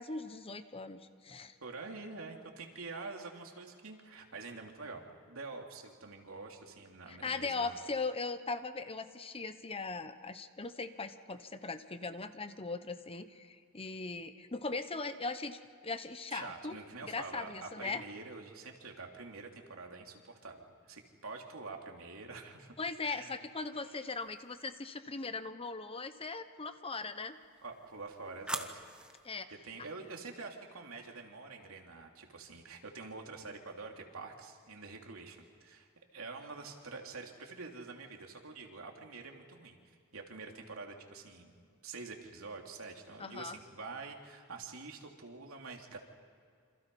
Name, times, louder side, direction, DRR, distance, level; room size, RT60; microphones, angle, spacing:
voice 1, 0.0-1.5 7.1-16.7 17.0-18.0 22.8-27.4 29.2-29.5 43.2-43.6, left 3 dB, 25° left, 10 dB, 1.0 m, -39 dB
voice 2, 1.6-7.8 16.3-22.7 23.0-23.3 27.6-28.8 29.5-39.8 40.1-46.0, right 3 dB, 80° right, 2 dB, 3.0 m, -46 dB
sound 1, 24.1-24.8 27.2-29.3, right 1 dB, 5° right, 1.3 m, -44 dB
27.5 x 27.0 x 5.5 m, 2.2 s
head